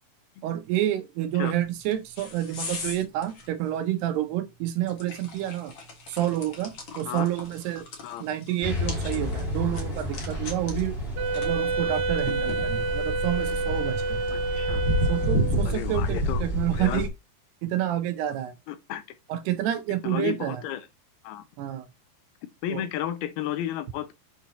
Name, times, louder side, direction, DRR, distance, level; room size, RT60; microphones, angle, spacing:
voice 1, 0.4-5.7 6.1-7.9 8.2-11.0 11.3-14.2 15.1-17.1 17.6-18.5 19.3-20.6 21.6-21.9 22.7-22.8, right 12 dB, 80° right, 3.1 m, -29 dB
sound 1, 1.6-13.1, left 4 dB, 45° left, 1.6 m, -43 dB
sound 2, 8.6-17.1, equal, 20° left, 1.9 m, -29 dB
Wind instrument woodwind instrument, 11.2-15.7, right 3 dB, 60° right, 1.9 m, -29 dB
voice 2, 14.3-14.8 15.7-16.4 16.7-17.0 18.7-19.0 20.0-20.9 21.2-21.4 22.6-24.1, left 11 dB, 80° left, 2.5 m, -32 dB
8.0 x 4.5 x 4.2 m
omnidirectional pair, 4.7 m